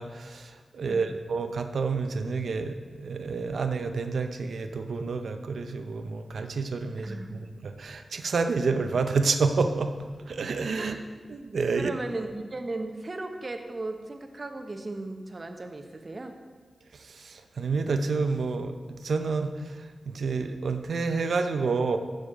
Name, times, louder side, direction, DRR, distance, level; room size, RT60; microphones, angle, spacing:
voice 1, 0.0-9.9 10.3-11.0 11.3-11.9 17.0-22.0, right 4 dB, 80° right, 7 dB, 0.6 m, -29 dB
voice 2, 7.0-7.5 10.8-11.0 11.7-16.4, right 2 dB, 40° right, 5 dB, 1.0 m, -36 dB
7.0 x 6.5 x 7.5 m, 1.4 s
wide cardioid pair, 80°, 0 cm